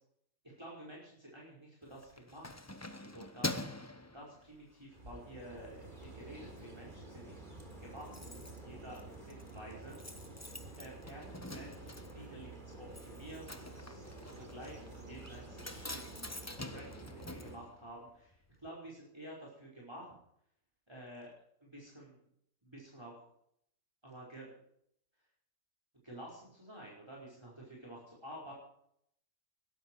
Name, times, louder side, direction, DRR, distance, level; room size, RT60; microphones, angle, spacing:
voice 1, 0.6-2.6 3.0-3.8 4.1-7.4 7.8-10.0 10.4-16.0 16.4-20.1 20.9-21.3 21.6-22.2 22.6-23.3 24.0-24.5 26.0-28.5, right 1 dB, 15° right, -3 dB, 5.2 m, -51 dB
Keys jangling, 1.8-4.9 5.4-5.6 6.0-6.7 6.9-7.0 7.3-7.4 7.5-18.4 18.6-18.7, left 2 dB, 15° left, 1.0 m, -45 dB
sound 1, 4.9-17.6, right 2 dB, 35° right, 3.8 m, -50 dB
21.5 x 13.0 x 4.8 m, 0.70 s
omnidirectional pair, 1.5 m